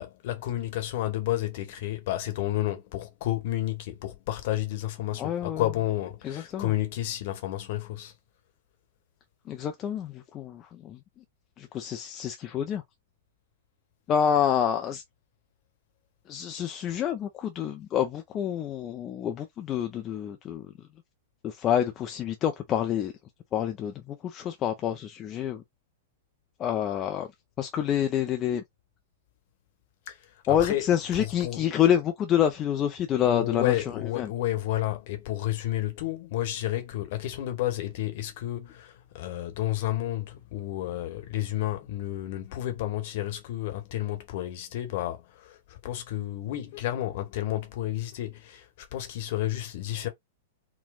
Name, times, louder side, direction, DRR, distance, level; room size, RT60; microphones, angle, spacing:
voice 1, 0.0-8.1 30.1-30.2 30.5-31.6 33.1-50.1, left 13 dB, 55° left, 1.1 m, -31 dB
voice 2, 5.2-5.7 6.2-6.7 9.5-11.0 11.6-12.8 14.1-15.0 16.3-20.7 21.4-23.1 23.5-25.6 26.6-27.3 27.6-28.6 30.5-34.3, left 9 dB, 30° left, 0.5 m, -27 dB
4.1 x 2.2 x 2.3 m
figure-of-eight pair, 105°, 0 cm